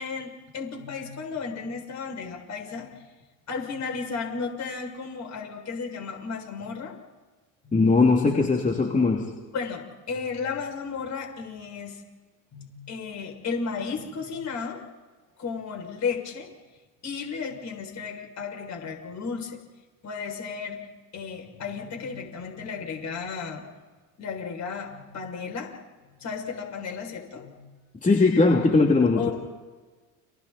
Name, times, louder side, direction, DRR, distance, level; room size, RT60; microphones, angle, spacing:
voice 1, 0.0-2.9 3.5-6.9 7.6-7.8 9.5-12.0 12.5-14.8 15.4-16.5 17.0-19.6 20.0-20.9 21.1-23.6 24.2-25.7 26.1-27.6 29.0-29.3, left 5 dB, 45° left, 2 dB, 6.9 m, -34 dB
voice 2, 7.7-9.3 28.0-29.3, left 3 dB, 20° left, 1 dB, 2.9 m, -20 dB
30.0 x 25.5 x 4.4 m, 1.3 s
hypercardioid pair, 75°, 40 cm